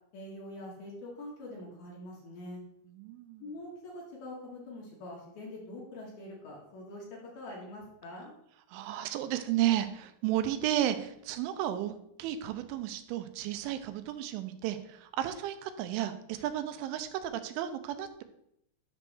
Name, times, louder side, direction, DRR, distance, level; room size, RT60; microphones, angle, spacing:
voice 1, 0.1-2.6 3.4-7.0 7.3-8.3, left 1 dB, 65° left, -3 dB, 3.1 m, -44 dB
voice 2, 3.0-3.4 8.7-11.9 12.2-18.2, right 12 dB, 90° right, 9 dB, 3.1 m, -33 dB
10.0 x 3.4 x 6.1 m, 0.75 s
omnidirectional pair, 5.3 m